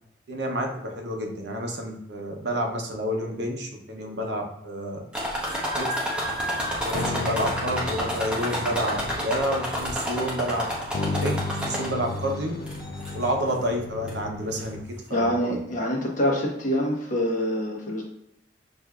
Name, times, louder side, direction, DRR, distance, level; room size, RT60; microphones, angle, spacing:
voice 1, 0.3-5.0 5.8-6.0 6.8-10.7 11.0-12.6 13.1-14.8 15.1-15.6, equal, 70° right, 1 dB, 0.8 m, -29 dB
sound 1, 5.1-12.2 12.7-13.3 14.1-14.2 14.6-14.7, equal, 5° right, 0.8 m, -30 dB
sound 2, 6.2-14.8, left 3 dB, 75° left, 0.5 m, -35 dB
voice 2, 15.1-18.0, equal, 45° left, -3 dB, 1.1 m, -25 dB
6.5 x 2.6 x 2.3 m, 0.78 s
head